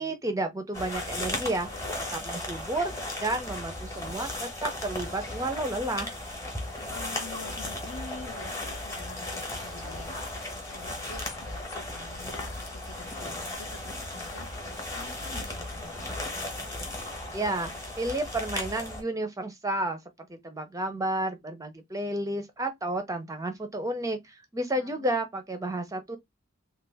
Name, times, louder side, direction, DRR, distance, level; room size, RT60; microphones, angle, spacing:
voice 1, 0.0-1.8 2.1-6.2 17.3-20.0 20.3-26.2, right 1 dB, 15° right, 0.5 m, -31 dB
sound 1, 0.7-19.0, left 1 dB, 15° left, 0.9 m, -36 dB
voice 2, 6.9-16.2 24.7-25.1, left 4 dB, 65° left, 0.7 m, -46 dB
3.2 x 2.2 x 3.2 m
head